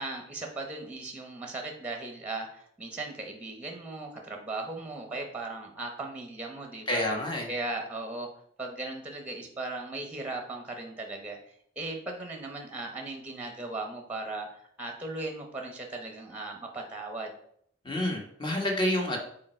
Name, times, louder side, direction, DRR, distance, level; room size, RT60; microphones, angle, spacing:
voice 1, 0.0-7.0 7.5-8.3 8.6-11.4 11.8-17.3, right 2 dB, 10° right, 3 dB, 1.0 m, -37 dB
voice 2, 6.9-7.5 17.8-19.2, left 1 dB, 25° left, 1 dB, 1.3 m, -28 dB
7.3 x 4.4 x 4.4 m, 0.67 s
head